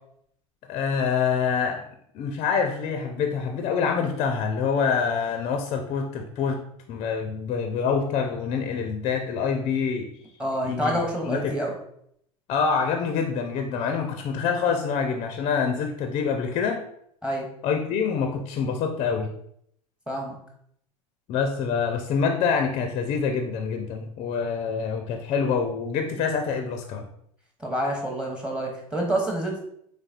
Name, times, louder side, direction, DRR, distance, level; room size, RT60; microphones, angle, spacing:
voice 1, 0.7-1.8 2.1-6.6 6.9-10.1 10.6-11.6 12.5-16.8 17.6-19.3 21.3-27.1, left 6 dB, 35° left, 4 dB, 0.4 m, -26 dB
voice 2, 10.4-11.7 17.2-17.5 20.1-20.4 27.6-29.6, right 1 dB, 5° right, 1 dB, 0.7 m, -27 dB
4.0 x 3.1 x 2.4 m, 0.70 s
figure-of-eight pair, 75°, 19 cm